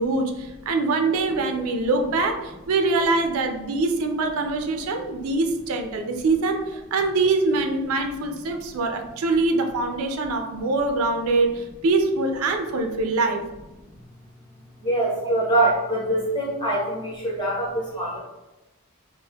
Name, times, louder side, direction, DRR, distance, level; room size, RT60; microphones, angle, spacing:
voice 1, 0.0-13.4 15.2-15.3, right 3 dB, 80° right, 5 dB, 0.4 m, -24 dB
voice 2, 14.8-18.2, right 1 dB, 20° left, -5 dB, 0.8 m, -24 dB
4.3 x 2.0 x 2.2 m, 1.0 s
head